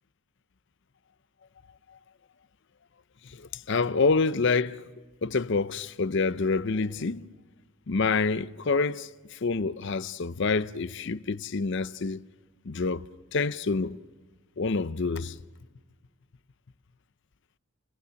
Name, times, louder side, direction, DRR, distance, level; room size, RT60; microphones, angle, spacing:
voice 1, 3.3-4.8 5.2-7.2 7.9-12.2 12.7-13.0 13.3-14.0 14.6-15.3, left 4 dB, 55° left, 0.6 m, -27 dB
29.5 x 18.0 x 6.4 m
head